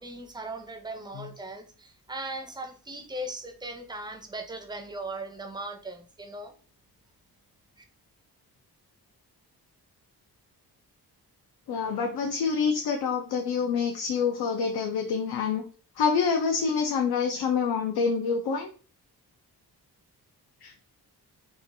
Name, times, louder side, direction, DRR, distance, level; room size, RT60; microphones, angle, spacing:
voice 1, 0.0-6.5 7.8-7.9, right 1 dB, 10° right, 6 dB, 0.4 m, -38 dB
voice 2, 11.7-15.6 16.0-18.7 20.6-20.7, left 5 dB, 80° left, 3 dB, 0.5 m, -26 dB
3.0 x 2.3 x 2.6 m, 0.40 s
cardioid pair, 80°, 39 cm